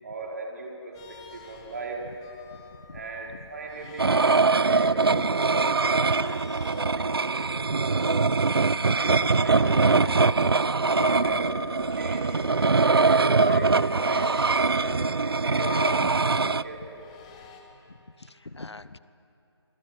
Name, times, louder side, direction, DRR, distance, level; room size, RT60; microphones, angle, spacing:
voice 1, 0.0-2.1 2.9-8.2 8.6-10.6 11.0-11.5 11.9-15.8 16.1-16.9, right 3 dB, 35° right, -1 dB, 4.4 m, -38 dB
sound 1, 1.0-10.0 10.5-12.9 13.2-17.6, left 4 dB, 15° left, 1.7 m, -41 dB
sound 2, 4.0-16.6, right 4 dB, 60° right, 0.6 m, -23 dB
voice 2, 4.3-4.8 5.1-5.3 6.9-7.1 9.2-9.4 10.1-10.6 10.8-11.4 14.1-14.3 14.9-15.1 15.5-15.6 16.4-16.6 18.2-19.0, left 3 dB, 75° left, 15 dB, 1.1 m, -42 dB
26.5 x 20.5 x 9.6 m, 2.7 s
figure-of-eight pair, 160°, 14 cm